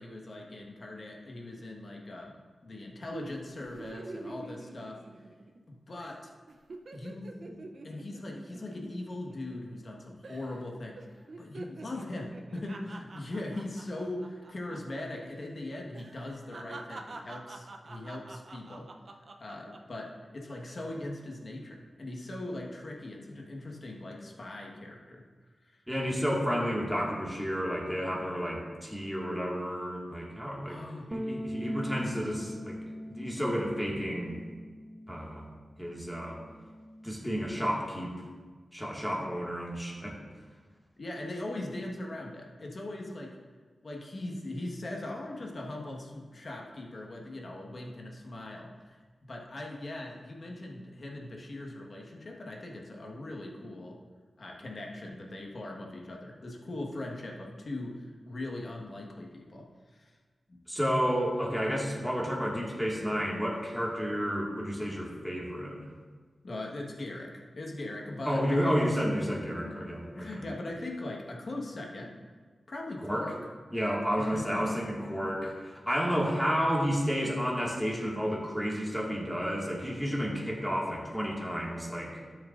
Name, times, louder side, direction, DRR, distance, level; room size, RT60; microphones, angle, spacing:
voice 1, 0.0-5.0 5.7-6.3 6.9-18.9 19.4-25.2 25.6-25.8 30.6-31.1 41.0-43.4 43.8-54.0 54.4-60.1 60.5-60.6 66.4-68.8 69.3-69.8 70.1-72.1 72.7-73.3 74.2-74.8 75.2-75.3, left 1 dB, 55° left, -1 dB, 1.5 m, -40 dB
sound 1, 3.1-5.7 6.0-6.2 6.5-9.9 10.2-10.7 11.0-15.0 15.3-15.5 15.9-20.0 20.5-20.9, right 2 dB, 65° right, 0.6 m, -46 dB
voice 2, 25.9-30.8 31.1-32.8 33.1-34.4 35.1-35.4 35.8-36.4 37.0-38.1 38.7-40.2 60.7-65.8 68.3-70.4 73.0-73.3 73.7-75.5 75.9-82.1, equal, 5° left, -3 dB, 2.0 m, -31 dB
sound 2, 31.1-35.7 35.9-37.4, equal, 25° right, 0.5 m, -40 dB
12.0 x 7.2 x 2.6 m, 1.5 s
cardioid pair, 65°, 0 cm